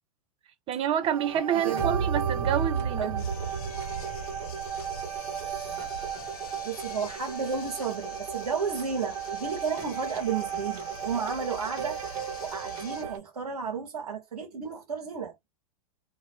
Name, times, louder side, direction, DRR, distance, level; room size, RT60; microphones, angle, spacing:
voice 1, 0.7-3.1, right 9 dB, 30° right, 0.5 m, -28 dB
sound 1, 1.0-13.2, right 7 dB, 50° right, 1.1 m, -33 dB
voice 2, 3.0-3.4 6.6-12.0 12.4-15.3, right 6 dB, 90° right, 0.8 m, -32 dB
sound 2, 3.2-13.0, left 5 dB, 70° left, 0.6 m, -46 dB
2.6 x 2.1 x 3.0 m
hypercardioid pair, 110°, 19 cm